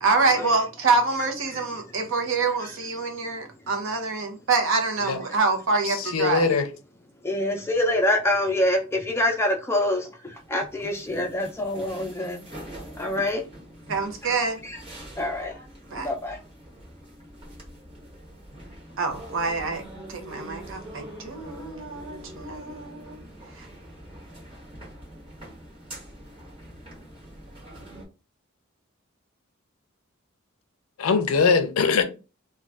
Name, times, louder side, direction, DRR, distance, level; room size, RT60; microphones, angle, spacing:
voice 1, 0.0-6.5 13.9-14.6 15.9-16.1 19.0-19.8 20.1-23.2 23.5-23.7, right 3 dB, 65° right, 0.7 m, -26 dB
voice 2, 5.9-6.7 31.0-32.0, left 5 dB, 80° left, 0.5 m, -21 dB
voice 3, 7.2-12.4 13.0-13.4 14.2-14.3 14.6-14.8 15.2-15.6 15.9-16.4, left 1 dB, 10° left, 0.5 m, -26 dB
sound 1, 10.3-28.0, right 1 dB, 25° right, 1.1 m, -44 dB
2.5 x 2.3 x 3.2 m
head